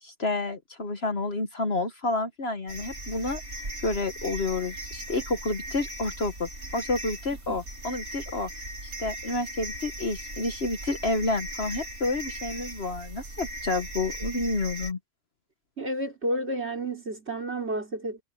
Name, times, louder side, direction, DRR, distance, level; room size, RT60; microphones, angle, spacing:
voice 1, 0.0-3.4 3.8-8.5 8.8-15.0, left 2 dB, 45° left, 1.5 m, -29 dB
sound 1, 2.7-14.9, right 1 dB, 65° right, 4.6 m, -38 dB
voice 2, 15.8-18.2, right 1 dB, 45° right, 4.3 m, -31 dB
omnidirectional pair, 1.6 m